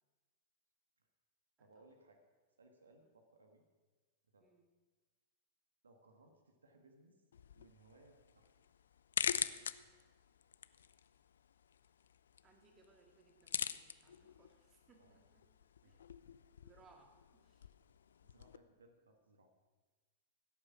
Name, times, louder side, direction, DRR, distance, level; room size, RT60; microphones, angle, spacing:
voice 1, 1.6-2.2 2.6-3.6 4.3-4.5 5.8-7.2 7.5-8.5 9.2-9.9 15.0-15.2 15.8-16.1 18.2-19.5, right 2 dB, 80° right, 5 dB, 1.6 m, -66 dB
sound 1, 7.3-18.6, left 8 dB, 70° left, 0.5 m, -45 dB
voice 2, 12.4-15.4 15.8-16.0 16.6-17.7, right 4 dB, 25° right, 4 dB, 2.2 m, -68 dB
16.5 x 8.7 x 6.0 m, 1.3 s
figure-of-eight pair, 100°, 0 cm